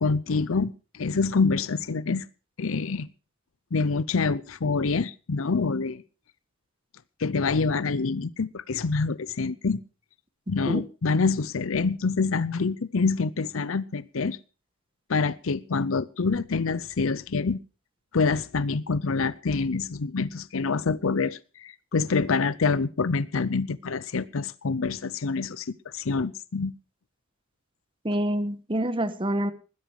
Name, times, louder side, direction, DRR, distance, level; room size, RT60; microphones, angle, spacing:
voice 1, 0.0-2.3 2.6-3.1 3.7-6.0 7.2-9.8 10.5-14.4 15.1-17.6 18.1-26.7, left 4 dB, 70° left, 0.7 m, -26 dB
voice 2, 28.0-29.5, right 1 dB, 25° right, 1.3 m, -27 dB
20.5 x 10.5 x 4.7 m
head